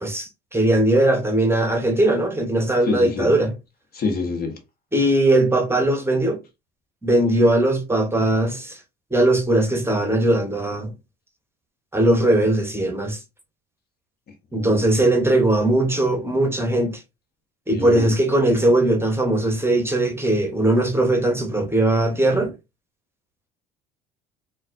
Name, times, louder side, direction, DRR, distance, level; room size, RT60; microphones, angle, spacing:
voice 1, 0.0-3.5 4.9-6.4 7.0-8.8 9.1-10.9 11.9-13.2 14.5-17.0 17.7-22.5, right 1 dB, 10° right, 0.9 m, -19 dB
voice 2, 2.8-3.3 3.9-4.6 14.5-15.1 17.7-18.1, left 4 dB, 50° left, 1.2 m, -27 dB
3.9 x 2.4 x 2.5 m
hypercardioid pair, 70°, 20 cm